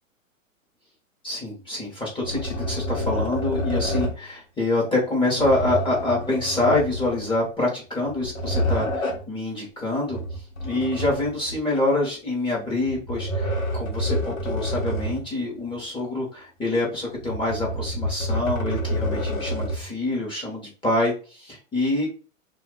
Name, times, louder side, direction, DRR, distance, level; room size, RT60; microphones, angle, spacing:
voice 1, 1.2-10.2 10.6-22.1, left 2 dB, 10° left, -3 dB, 1.1 m, -26 dB
sound 1, 2.2-4.3 5.3-7.4 8.0-9.3 10.1-11.6 12.9-15.3 15.7-15.8 17.1-19.9, equal, 85° left, 1.1 m, -28 dB
2.5 x 2.4 x 3.7 m, 0.35 s
hypercardioid pair, 115°, 40 cm